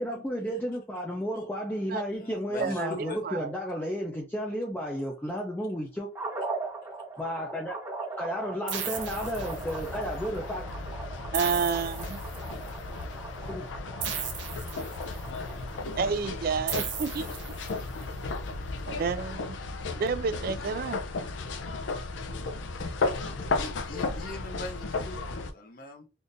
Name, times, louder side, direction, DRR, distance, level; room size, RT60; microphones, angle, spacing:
voice 1, 0.0-6.1 7.2-7.9 8.2-10.7 13.5-13.7, equal, 10° left, 0.5 m, -33 dB
voice 2, 2.1-3.2 23.5-26.0, left 2 dB, 50° left, 0.7 m, -41 dB
sound 1, 6.1-18.4, right 3 dB, 15° right, 0.8 m, -41 dB
sound 2, 8.7-10.0 11.3-12.7 14.0-15.4 16.7-18.0, right 8 dB, 80° right, 0.8 m, -36 dB
sound 3, 8.9-25.5, left 3 dB, 85° left, 0.5 m, -35 dB
voice 3, 11.3-12.2 16.0-17.6 18.9-19.6 19.9-21.0, right 5 dB, 55° right, 0.3 m, -30 dB
3.6 x 2.5 x 2.6 m
head